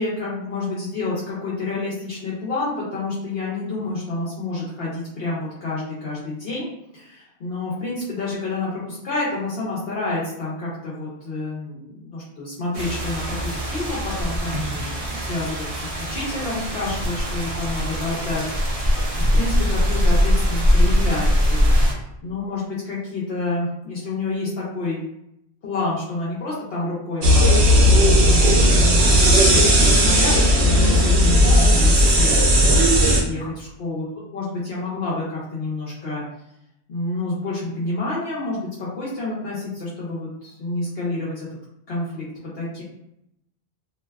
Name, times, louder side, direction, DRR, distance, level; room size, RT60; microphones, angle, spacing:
voice 1, 0.0-6.7 6.9-18.4 18.8-21.7 22.2-25.0 25.6-27.6 27.9-32.5 32.8-34.1 34.3-36.2 36.9-41.5 41.9-42.2 42.5-42.8, left 2 dB, 70° left, -7 dB, 0.9 m, -29 dB
sound 1, 12.7-21.9, equal, 50° right, 0.4 m, -22 dB
sound 2, 27.2-33.2, equal, 75° right, 0.9 m, -15 dB
2.5 x 2.2 x 2.2 m, 0.81 s
omnidirectional pair, 1.1 m